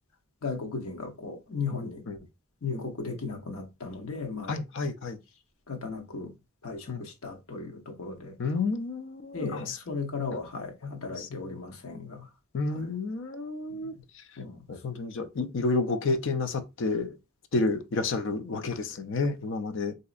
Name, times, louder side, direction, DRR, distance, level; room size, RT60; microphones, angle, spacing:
voice 1, 0.4-2.0 2.6-4.5 5.7-6.3 6.6-8.3 9.3-12.3 12.7-12.9 13.7-13.9 14.4-14.6, left 4 dB, 75° left, 0.9 m, -36 dB
voice 2, 4.5-5.2 6.9-7.0 8.4-9.8 10.8-11.3 12.5-13.9 14.7-17.2 17.5-19.9, left 3 dB, 55° left, 0.4 m, -30 dB
4.0 x 2.7 x 2.4 m
head